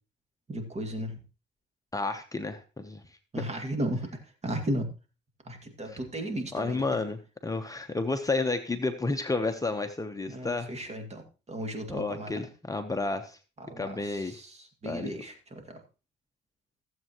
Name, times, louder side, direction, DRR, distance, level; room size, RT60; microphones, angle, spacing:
voice 1, 0.5-1.2 3.3-4.1 4.4-4.9 5.5-6.8 10.3-12.3 13.7-15.8, right 1 dB, 35° right, 4 dB, 2.2 m, -35 dB
voice 2, 1.9-3.2 5.9-6.0 6.5-10.7 11.9-13.4 13.8-14.4 14.8-15.2, left 3 dB, 15° left, 6 dB, 0.9 m, -31 dB
15.5 x 7.7 x 3.0 m, 0.32 s
cardioid pair, 90°, 20 cm